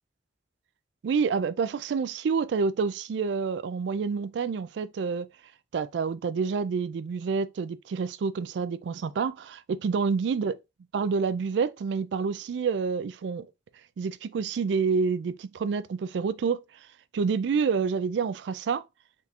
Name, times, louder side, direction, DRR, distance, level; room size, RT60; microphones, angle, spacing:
voice 1, 1.0-5.3 5.7-10.5 10.9-13.5 14.0-16.6 17.1-18.8, right 5 dB, 75° right, 0.3 m, -28 dB
4.2 x 3.7 x 2.4 m
head